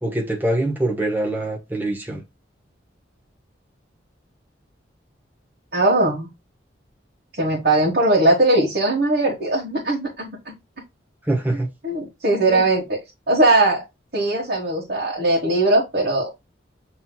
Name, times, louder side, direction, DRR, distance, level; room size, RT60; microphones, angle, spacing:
voice 1, 0.0-2.2 11.3-11.7 12.5-12.6, right 1 dB, 10° right, 1.1 m, -24 dB
voice 2, 5.7-6.3 7.3-10.5 11.5-13.0 13.3-13.8 14.1-16.3, right 2 dB, 55° right, 1.3 m, -20 dB
7.5 x 3.1 x 2.2 m
head